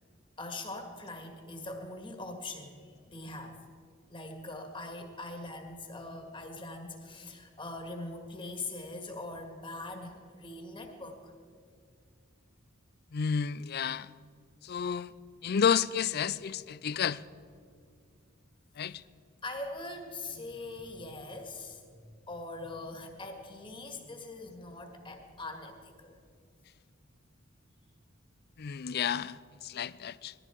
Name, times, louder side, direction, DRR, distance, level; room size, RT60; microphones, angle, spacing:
voice 1, 0.4-3.6 4.1-11.3 18.8-19.1 19.4-26.2, left 2 dB, 25° left, 4 dB, 1.9 m, -42 dB
voice 2, 13.1-14.1 14.6-15.1 15.4-17.2 18.8-19.0 28.6-29.4 29.6-30.3, left 7 dB, 50° left, 18 dB, 0.4 m, -30 dB
19.5 x 14.5 x 4.6 m, 2.3 s
head